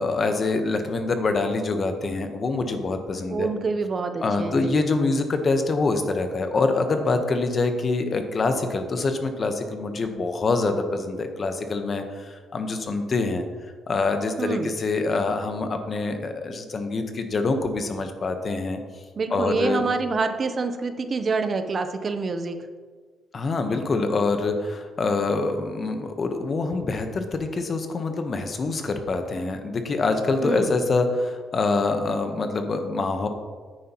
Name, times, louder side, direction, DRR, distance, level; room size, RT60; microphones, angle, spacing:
voice 1, 0.0-3.5 4.2-13.4 13.9-18.8 19.3-19.8 23.3-33.3, left 3 dB, 45° left, 6 dB, 1.1 m, -25 dB
voice 2, 3.3-4.9 14.4-14.7 19.2-22.6 30.4-30.8, right 4 dB, 40° right, 8 dB, 0.7 m, -27 dB
9.8 x 9.3 x 3.0 m, 1.5 s
cardioid pair, 90°, 0 cm